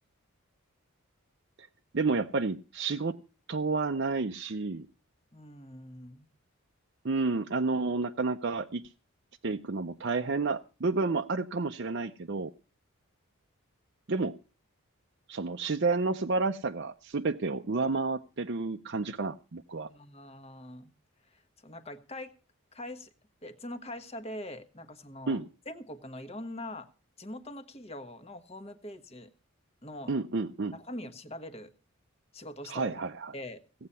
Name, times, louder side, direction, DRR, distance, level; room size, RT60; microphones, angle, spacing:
voice 1, 1.9-3.2 3.5-4.9 7.0-8.8 9.4-12.5 14.1-14.4 15.3-19.9 25.3-25.5 30.1-30.8 32.7-33.3, right 3 dB, 50° right, 4 dB, 0.6 m, -30 dB
voice 2, 5.3-6.3 19.9-20.9 21.3-22.3 22.7-23.1 23.4-25.4 25.6-26.9 27.2-29.3 29.8-30.1 30.7-31.7 32.3-33.0 33.3-33.6, left 1 dB, 25° left, 9 dB, 1.2 m, -43 dB
17.0 x 8.6 x 5.5 m, 0.35 s
head